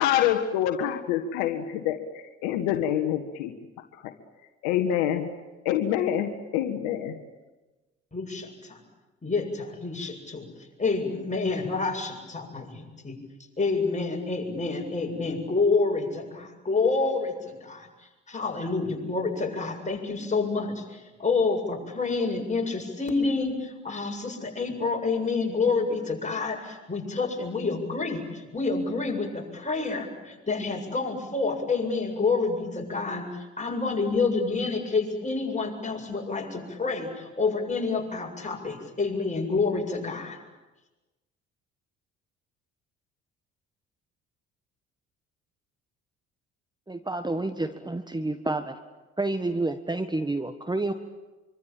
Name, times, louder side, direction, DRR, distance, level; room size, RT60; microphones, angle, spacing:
voice 1, 0.0-3.5 4.0-4.1 4.6-5.3 5.6-7.2, left 10 dB, 75° left, 5 dB, 1.7 m, -26 dB
voice 2, 8.1-8.8 9.2-10.5 10.8-13.2 13.6-17.9 18.3-40.4, left 4 dB, 20° left, 1 dB, 7.6 m, -28 dB
voice 3, 46.9-48.8 49.2-50.9, right 2 dB, 10° right, 9 dB, 1.6 m, -29 dB
26.0 x 25.0 x 9.0 m, 1.1 s
hypercardioid pair, 55°, 34 cm